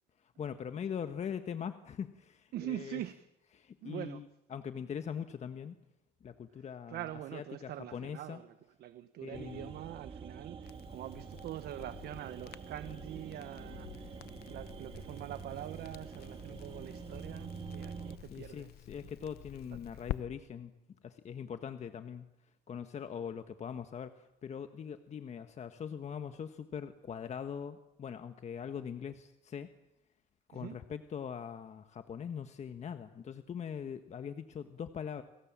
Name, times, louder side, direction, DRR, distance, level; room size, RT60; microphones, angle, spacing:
voice 1, 0.2-3.0 3.5-5.8 6.2-7.0 7.3-8.4 9.2-9.7 18.3-20.7 21.0-22.3 22.7-29.7 30.5-35.2, left 7 dB, 40° left, 9 dB, 1.5 m, -42 dB
voice 2, 2.5-3.3 3.8-4.2 6.9-18.7 30.5-30.8, right 13 dB, 70° right, 12 dB, 1.2 m, -44 dB
sound 1, 9.3-18.2, right 6 dB, 30° right, 2.2 m, -46 dB
Crackle, 10.6-20.2, left 14 dB, 70° left, 1.0 m, -48 dB
30.0 x 23.0 x 7.5 m, 0.93 s
cardioid pair, 110°, 17 cm